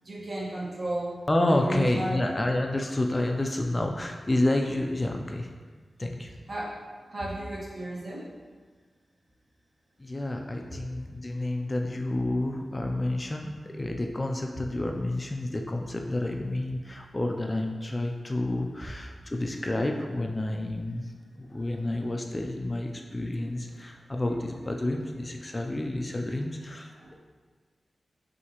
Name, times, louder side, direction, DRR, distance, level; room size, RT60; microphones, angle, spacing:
voice 1, 0.0-1.2 1.5-2.2 6.5-6.8 7.1-8.3 26.8-27.1, right 1 dB, 60° right, -6 dB, 1.3 m, -34 dB
voice 2, 1.3-5.5 6.0-6.3 10.0-26.9, left 1 dB, 25° left, 2 dB, 0.4 m, -29 dB
5.8 x 2.7 x 2.9 m, 1.5 s
wide cardioid pair, 90°, 0 cm